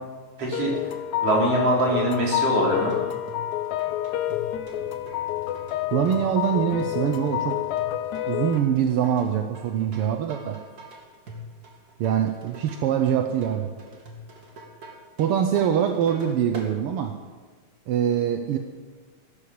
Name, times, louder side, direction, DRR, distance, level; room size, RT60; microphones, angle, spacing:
voice 1, 0.4-0.9 1.2-2.9, right 2 dB, 55° right, -2 dB, 4.6 m, -23 dB
sound 1, 0.5-8.6, left 13 dB, 85° left, 2.3 m, -28 dB
sound 2, 2.5-16.7, equal, 35° right, 2.4 m, -44 dB
voice 2, 5.9-7.6 8.3-10.6 12.0-13.7 15.2-17.1 17.9-18.6, right 9 dB, 70° right, 6 dB, 1.4 m, -24 dB
15.0 x 12.0 x 7.2 m, 1.4 s
omnidirectional pair, 3.3 m